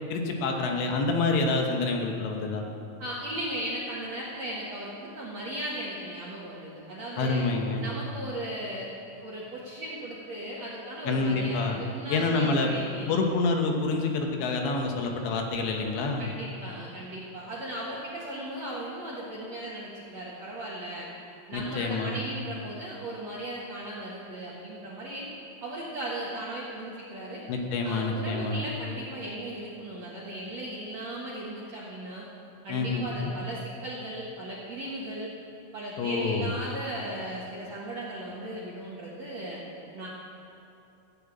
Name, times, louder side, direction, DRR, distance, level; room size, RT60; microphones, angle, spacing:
voice 1, 0.1-2.7 7.2-7.9 11.0-11.8 12.1-12.7 13.1-16.2 21.5-22.2 27.5-28.6 32.7-33.3 36.0-36.5, left 3 dB, 70° left, 2 dB, 3.1 m, -27 dB
voice 2, 3.0-7.4 7.8-8.9 9.2-13.1 16.2-21.0 21.5-25.3 25.6-27.4 27.8-32.2 32.6-35.3 35.7-39.6 39.9-40.1, right 1 dB, 85° right, -6 dB, 1.5 m, -37 dB
15.0 x 7.7 x 8.4 m, 2.8 s
omnidirectional pair, 6.0 m